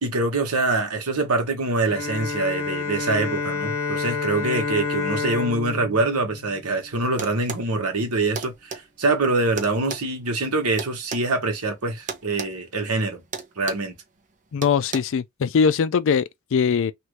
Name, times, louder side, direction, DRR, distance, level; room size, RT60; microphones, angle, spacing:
voice 1, 0.0-13.2 13.6-14.0, right 2 dB, 85° right, 1.2 m, -24 dB
Bowed string instrument, 1.9-7.4, left 4 dB, 75° left, 0.9 m, -29 dB
sound 1, 7.2-7.7 8.4-8.8 9.6-11.3 12.1-12.5 12.8-13.0 13.3-13.9 14.6-15.0, right 5 dB, 35° right, 0.7 m, -33 dB
voice 2, 14.5-16.9, left 6 dB, 60° left, 0.4 m, -21 dB
3.0 x 2.5 x 3.1 m
head